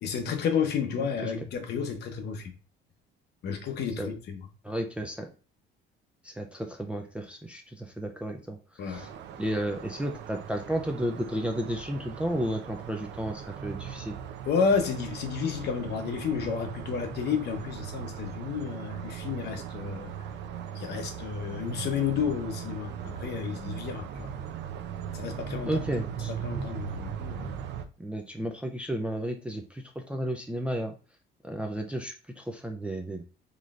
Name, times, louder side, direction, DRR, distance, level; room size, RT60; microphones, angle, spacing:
voice 1, 0.0-2.5 3.4-4.4 8.8-9.1 14.5-20.1 20.7-24.3 25.1-25.8 26.4-27.5, left 6 dB, 55° left, 0.8 m, -31 dB
voice 2, 1.0-1.3 4.0-4.1 4.6-5.3 6.2-9.1 9.4-14.2 25.7-26.3 28.0-31.0 31.4-33.2, right 1 dB, 5° right, 0.3 m, -33 dB
sound 1, 8.9-27.9, right 8 dB, 65° right, 0.5 m, -39 dB
3.9 x 3.2 x 2.4 m
cardioid pair, 145°, 20 cm